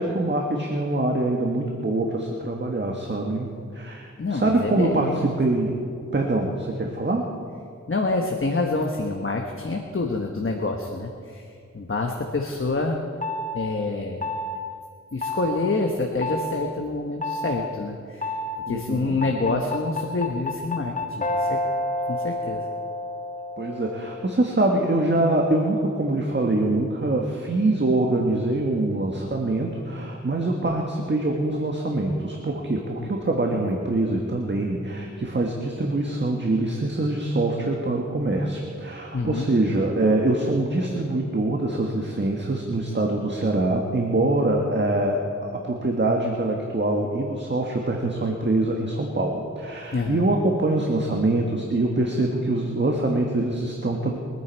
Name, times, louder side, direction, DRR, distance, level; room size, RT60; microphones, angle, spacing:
voice 1, 0.0-5.1 5.4-5.7 6.1-7.2 18.7-19.2 23.6-54.2, right 2 dB, 40° right, 1 dB, 1.5 m, -24 dB
voice 2, 4.2-5.3 7.9-11.5 11.7-13.0 13.5-14.3 15.1-18.3 18.7-21.6 22.1-22.6 33.0-33.1 39.1-39.5 49.9-50.2, left 3 dB, 45° left, 2 dB, 1.2 m, -27 dB
sound 1, 13.2-13.6 14.2-14.6 15.2-15.6 16.2-16.5 17.2-17.6 18.2-18.6 19.2-24.3, left 1 dB, 25° left, 1.4 m, -29 dB
23.0 x 9.5 x 4.6 m, 2.3 s
wide cardioid pair, 65°, 29 cm